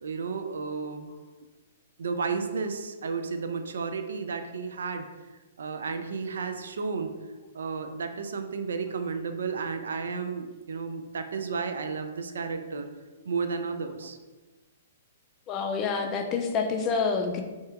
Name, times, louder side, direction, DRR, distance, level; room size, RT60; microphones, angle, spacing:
voice 1, 0.0-1.1 2.0-5.1 5.6-7.2 7.5-12.9 13.3-14.2, right 5 dB, 75° right, 7 dB, 0.3 m, -32 dB
voice 2, 15.5-17.4, left 5 dB, 30° left, 4 dB, 0.5 m, -27 dB
4.4 x 2.8 x 2.3 m, 1.2 s
hypercardioid pair, 125°, 0 cm